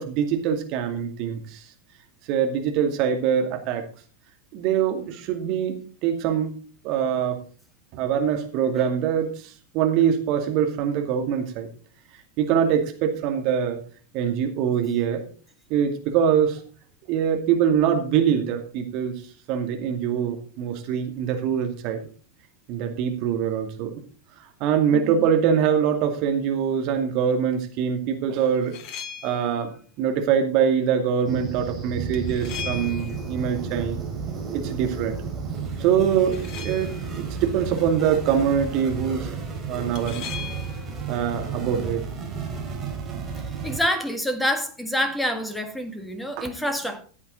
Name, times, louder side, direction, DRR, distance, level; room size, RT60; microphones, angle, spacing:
voice 1, 0.0-1.6 2.3-3.8 4.5-5.8 6.0-6.5 6.8-7.4 7.9-11.7 12.4-13.8 14.1-15.3 15.7-16.6 17.1-19.2 19.5-22.0 22.7-23.9 24.6-28.8 29.2-29.7 30.0-34.0 34.5-35.1 35.8-39.3 39.7-40.2 41.1-42.0 46.4-46.5, right 8 dB, 40° right, 2.4 m, -23 dB
voice 2, 24.9-25.3 43.4-47.0, equal, 5° left, 1.8 m, -27 dB
sound 1, 28.5-29.6 32.1-33.3 36.1-37.1 40.0-40.9, left 7 dB, 40° left, 1.3 m, -38 dB
sound 2, 31.2-43.8, right 5 dB, 20° right, 4.8 m, -32 dB
15.0 x 8.6 x 4.0 m
figure-of-eight pair, 90°, 0 cm